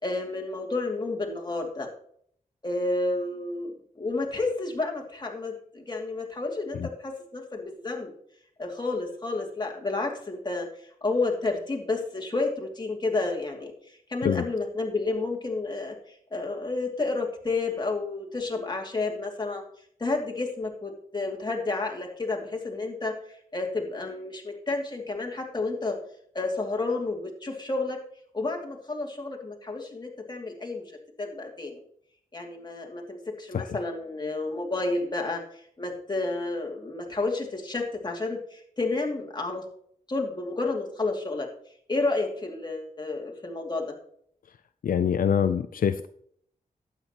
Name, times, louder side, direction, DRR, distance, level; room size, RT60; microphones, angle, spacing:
voice 1, 0.0-1.9 2.6-8.1 8.6-19.6 20.0-26.0 26.3-28.0 28.3-30.8 31.2-31.8 32.3-39.6 40.1-41.5 41.9-43.9, left 3 dB, 30° left, 0 dB, 2.5 m, -31 dB
voice 2, 44.8-46.1, left 8 dB, 75° left, 10 dB, 0.5 m, -25 dB
12.0 x 9.0 x 3.0 m, 0.64 s
cardioid pair, 70°, 15 cm